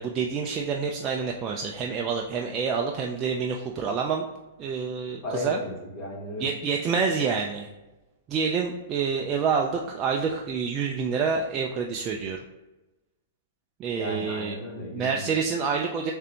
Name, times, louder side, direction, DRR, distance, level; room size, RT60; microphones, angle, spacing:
voice 1, 0.0-4.2 4.6-5.6 6.4-7.7 8.3-12.4 13.8-14.6 14.9-16.1, right 5 dB, 20° right, 0 dB, 0.3 m, -27 dB
voice 2, 5.2-6.7 13.9-15.4, left 1 dB, 25° left, -3 dB, 1.3 m, -35 dB
6.6 x 2.5 x 2.8 m, 1.1 s
hypercardioid pair, 170°, 0 cm